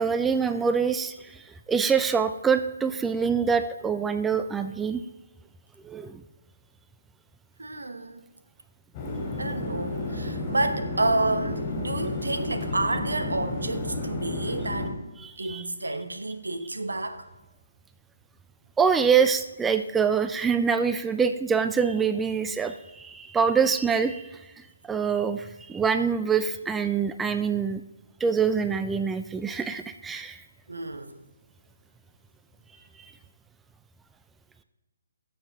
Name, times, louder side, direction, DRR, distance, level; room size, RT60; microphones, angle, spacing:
voice 1, 0.0-5.0 5.8-6.2 15.2-15.6 18.8-27.8 28.2-30.4 33.0-33.1, right 6 dB, 10° right, 9 dB, 0.3 m, -25 dB
voice 2, 7.6-8.2 9.4-14.9 15.4-17.3 30.7-31.2, right 2 dB, 80° right, 8 dB, 1.0 m, -30 dB
sound 1, 8.9-14.9, left 2 dB, 25° left, 3.3 m, -31 dB
13.0 x 7.1 x 3.5 m, 1.0 s
figure-of-eight pair, 145°, 0 cm